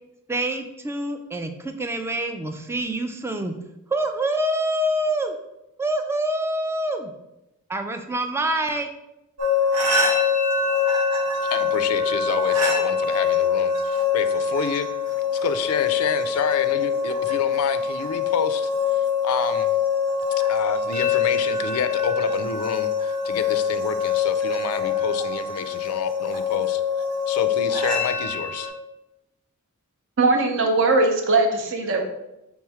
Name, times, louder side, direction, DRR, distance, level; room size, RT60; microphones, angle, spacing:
voice 1, 0.3-3.5 3.9-5.4 5.8-7.1 7.7-8.9, right 1 dB, 10° right, 7 dB, 0.3 m, -26 dB
sound 1, 9.4-28.7, left 6 dB, 85° right, 1.1 m, -24 dB
voice 2, 11.5-14.9 15.4-18.7 19.2-19.7 20.3-26.8 27.3-28.7, left 6 dB, 75° left, 11 dB, 0.4 m, -28 dB
voice 3, 30.2-32.0, right 3 dB, 55° right, 4 dB, 0.7 m, -20 dB
3.5 x 3.1 x 4.7 m, 0.90 s
head